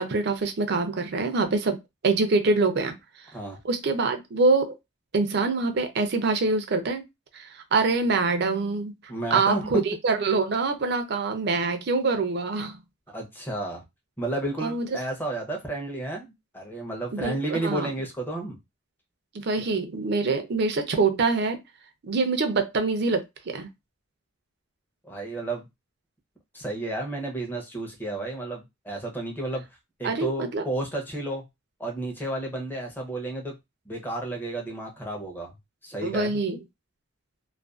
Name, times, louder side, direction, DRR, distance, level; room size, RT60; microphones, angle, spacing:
voice 1, 0.0-3.0 3.6-4.8 5.1-7.0 7.3-8.9 9.3-12.8 14.6-15.0 17.1-17.9 19.3-21.6 22.0-23.7 30.0-30.6 36.0-36.6, right 3 dB, 55° right, 0.5 m, -25 dB
voice 2, 9.1-9.7 13.1-13.8 14.2-18.6 25.0-25.7 26.5-29.7 30.0-31.4 31.8-33.6 33.9-35.5 35.8-36.4, right 1 dB, 10° left, 0.6 m, -32 dB
2.4 x 2.2 x 2.3 m
head